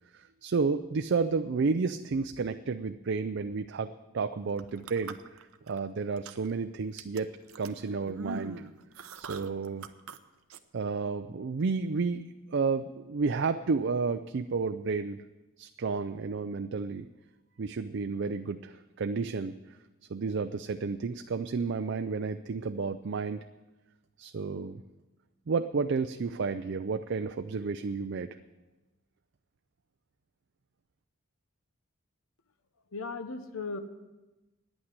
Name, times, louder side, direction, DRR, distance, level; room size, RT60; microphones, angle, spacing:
voice 1, 0.1-7.3 7.6-8.6 9.2-9.9 10.7-15.2 15.6-17.1 17.6-19.8 20.1-23.4 24.2-24.8 25.5-28.3, right 4 dB, 55° right, 8 dB, 0.4 m, -31 dB
sound 1, 4.5-5.8 6.1-6.6 7.0-10.2 10.5-10.6, right 4 dB, 90° right, 0.7 m, -42 dB
voice 2, 32.9-33.8, left 4 dB, 85° left, 10 dB, 1.0 m, -36 dB
10.0 x 8.7 x 9.4 m, 1.1 s
head